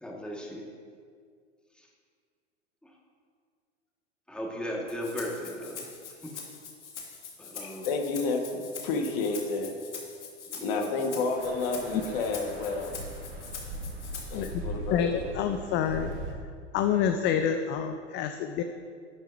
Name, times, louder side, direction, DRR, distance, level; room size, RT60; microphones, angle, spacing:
voice 1, 0.0-0.7 2.8-2.9 4.3-5.8 6.2-6.3 7.4-7.9 10.5-10.9 14.6-14.7, equal, 5° left, -2 dB, 1.6 m, -36 dB
Rattle (instrument), 4.9-14.5, left 5 dB, 75° left, 2.0 m, -43 dB
voice 2, 7.6-9.7 10.6-12.9 14.3-15.4, left 3 dB, 55° left, 3 dB, 1.6 m, -31 dB
sound 1, 11.4-16.3, right 1 dB, 35° right, 1.6 m, -40 dB
voice 3, 14.3-14.6 14.9-16.2 16.7-18.6, left 8 dB, 30° left, 7 dB, 0.5 m, -28 dB
11.0 x 10.0 x 2.7 m, 2.1 s
hypercardioid pair, 95°, 35 cm